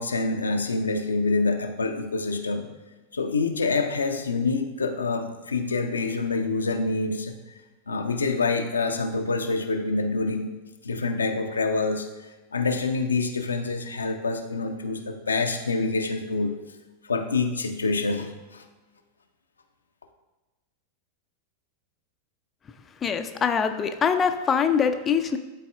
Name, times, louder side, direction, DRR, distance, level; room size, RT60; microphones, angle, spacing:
voice 1, 0.0-2.7 3.1-7.4 7.9-10.5 10.8-12.1 12.5-16.5 17.0-18.6, left 3 dB, 75° left, 5 dB, 0.5 m, -26 dB
voice 2, 23.0-25.4, left 6 dB, 20° left, 7 dB, 0.4 m, -23 dB
11.5 x 4.1 x 2.4 m, 1.2 s
figure-of-eight pair, 90°, 0 cm